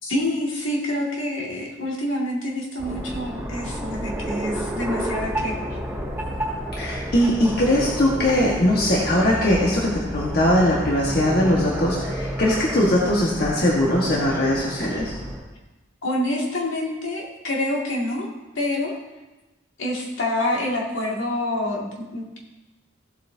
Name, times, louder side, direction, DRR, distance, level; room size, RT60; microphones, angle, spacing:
voice 1, 0.0-5.6 16.0-18.3 18.6-18.9 19.8-22.4, left 1 dB, 70° left, -3 dB, 2.2 m, -27 dB
sound 1, 2.8-15.4, equal, 10° right, 3.7 m, -30 dB
voice 2, 6.7-15.1, left 1 dB, 45° left, -5 dB, 1.5 m, -20 dB
16.0 x 8.1 x 2.8 m, 1.1 s
head